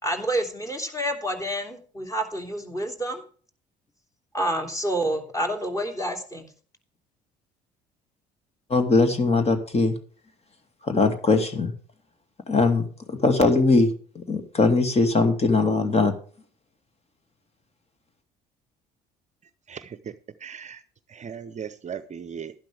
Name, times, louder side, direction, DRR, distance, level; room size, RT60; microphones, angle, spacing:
voice 1, 0.0-3.2 4.3-6.5, right 1 dB, 15° left, 4 dB, 3.2 m, -28 dB
voice 2, 8.7-9.9 10.8-11.7 12.5-16.1, left 3 dB, 30° left, 7 dB, 2.5 m, -21 dB
voice 3, 19.7-20.1 20.4-20.8 21.1-22.5, right 7 dB, 35° right, 14 dB, 0.8 m, -37 dB
11.5 x 11.5 x 3.5 m, 0.42 s
hypercardioid pair, 55°, 20 cm